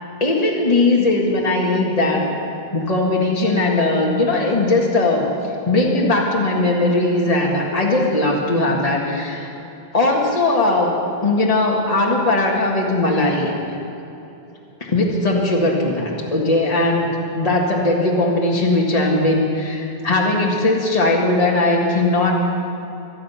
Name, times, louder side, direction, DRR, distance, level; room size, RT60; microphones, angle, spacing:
voice 1, 0.2-2.3 2.7-5.3 5.7-9.5 9.9-13.5 14.8-22.4, left 2 dB, 35° left, -2 dB, 1.9 m, -19 dB
23.5 x 10.5 x 5.8 m, 2.9 s
omnidirectional pair, 1.0 m